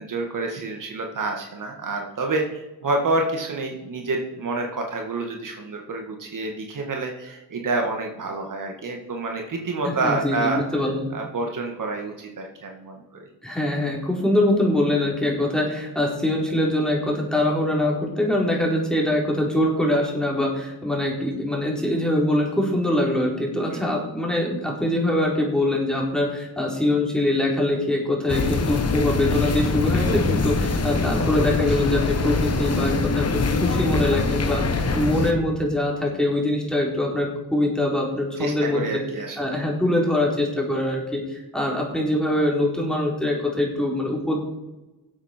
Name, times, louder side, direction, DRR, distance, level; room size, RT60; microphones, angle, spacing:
voice 1, 0.0-10.6 11.1-13.3 23.7-23.8 38.4-39.6, right 2 dB, 55° right, 2 dB, 1.9 m, -28 dB
voice 2, 9.8-11.1 13.4-39.0 39.4-44.4, left 1 dB, ahead, -2 dB, 3.9 m, -23 dB
sound 1, 28.3-35.3, left 3 dB, 40° left, 1.4 m, -23 dB
17.0 x 8.3 x 4.5 m, 1.1 s
cardioid pair, 85°, 38 cm